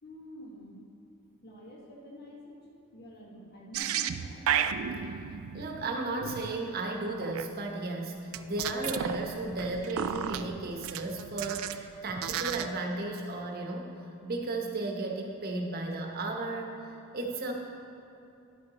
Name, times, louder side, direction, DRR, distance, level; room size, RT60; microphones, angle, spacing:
voice 1, 0.0-0.8 1.4-2.6 2.9-4.5, equal, 50° left, -3 dB, 1.5 m, -47 dB
sound 1, 3.7-7.5 8.3-11.8 12.1-12.8, right 8 dB, 70° right, 0.3 m, -34 dB
voice 2, 5.5-13.9 14.2-16.7 17.1-17.5, right 2 dB, 45° right, 1 dB, 0.9 m, -34 dB
10.5 x 8.4 x 3.0 m, 2.8 s
head